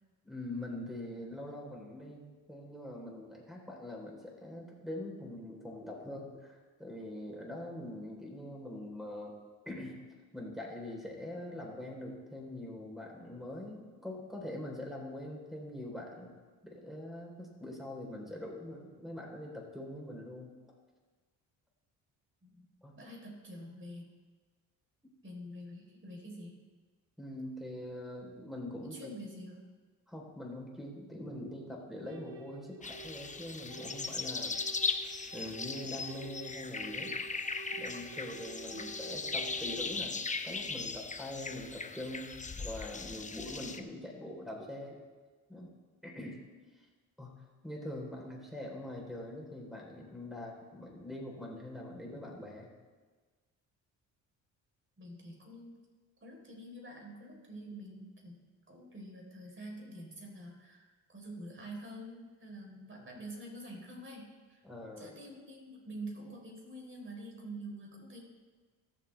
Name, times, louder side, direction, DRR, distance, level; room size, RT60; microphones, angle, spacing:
voice 1, 0.2-9.3 9.7-9.9 10.3-16.3 16.6-20.5 22.8-23.0 27.2-29.1 30.1-34.6 35.3-37.1 37.7-40.2 40.4-45.0 45.5-45.7 46.0-46.4 46.7-46.9 47.2-47.3 47.6-52.7 64.6-65.1, left 1 dB, ahead, -1 dB, 4.0 m, -43 dB
voice 2, 22.9-24.1 25.2-26.6 28.8-29.6 38.7-38.9 55.0-55.8 56.2-58.4 58.7-64.6 65.0-68.2, right 1 dB, 30° right, -1 dB, 4.2 m, -47 dB
sound 1, 32.1-40.0, right 5 dB, 80° right, 1.4 m, -50 dB
sound 2, 32.8-43.8, left 4 dB, 20° left, 0.8 m, -38 dB
19.0 x 7.6 x 3.5 m, 1.4 s
supercardioid pair, 70°, 39 cm